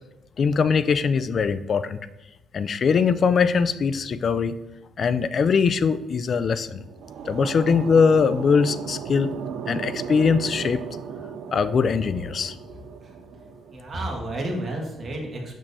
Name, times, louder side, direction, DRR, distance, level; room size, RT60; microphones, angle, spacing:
voice 1, 0.4-2.0 2.5-4.5 5.0-6.8 7.3-9.3 9.7-10.8 11.5-12.6, left 5 dB, 50° left, 13 dB, 0.4 m, -21 dB
sound 1, 6.7-13.8, right 7 dB, 75° right, 0.5 m, -36 dB
voice 2, 13.7-15.5, right 1 dB, 45° right, -1 dB, 1.7 m, -31 dB
6.5 x 6.0 x 2.7 m, 1.0 s
cardioid pair, 90°, 0 cm